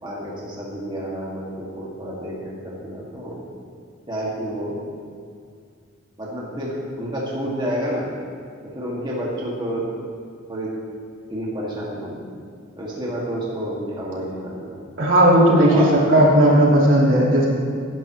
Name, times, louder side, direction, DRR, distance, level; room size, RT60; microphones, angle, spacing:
voice 1, 0.0-3.5 4.1-4.8 6.2-8.1 8.6-9.9 10.5-10.7 11.3-12.2 12.8-14.8 15.7-15.9, equal, 25° right, -5 dB, 2.0 m, -29 dB
voice 2, 15.0-15.8 16.1-17.5, right 1 dB, 80° right, -5 dB, 3.1 m, -15 dB
18.0 x 10.5 x 3.1 m, 2.2 s
head